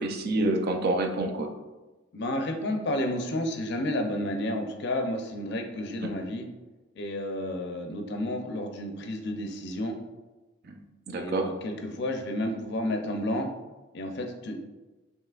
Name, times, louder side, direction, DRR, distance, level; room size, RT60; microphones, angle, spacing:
voice 1, 0.0-1.5 6.0-6.1 10.7-10.8 11.1-11.5, right 2 dB, 50° right, 4 dB, 0.5 m, -28 dB
voice 2, 2.1-6.5 7.0-10.0 11.2-13.5 13.9-14.5, left 1 dB, 55° left, 4 dB, 0.5 m, -31 dB
5.6 x 3.0 x 2.3 m, 1.2 s
head